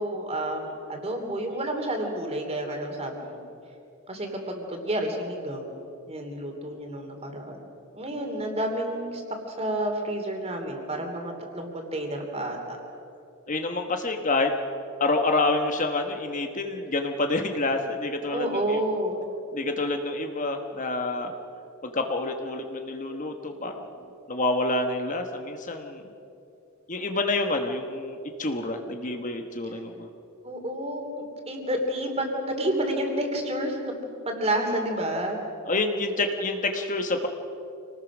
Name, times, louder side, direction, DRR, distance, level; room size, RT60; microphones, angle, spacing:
voice 1, 0.0-3.4 4.1-5.8 6.1-7.6 7.9-9.2 9.6-12.8 18.3-19.2 30.4-33.9 34.2-35.4, right 1 dB, 30° right, 3 dB, 3.0 m, -30 dB
voice 2, 13.5-14.5 15.0-18.8 19.5-21.3 21.8-23.9 24.3-26.0 26.9-30.1 35.7-37.3, left 2 dB, 35° left, 5 dB, 1.2 m, -28 dB
27.0 x 19.0 x 6.1 m, 2.7 s
head